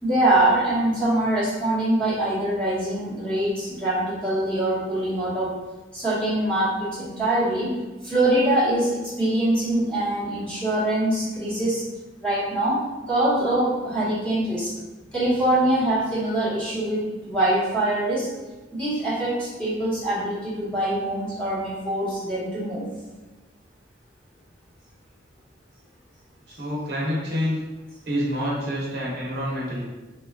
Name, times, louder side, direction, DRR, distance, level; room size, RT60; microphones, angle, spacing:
voice 1, 0.0-5.5 5.9-7.7 8.0-11.8 12.2-14.7 15.1-18.3 18.7-22.8, right 1 dB, 5° left, -11 dB, 1.1 m, -23 dB
voice 2, 26.5-27.6 28.1-29.8, equal, 60° right, -5 dB, 0.8 m, -27 dB
3.9 x 2.3 x 2.4 m, 1.2 s
head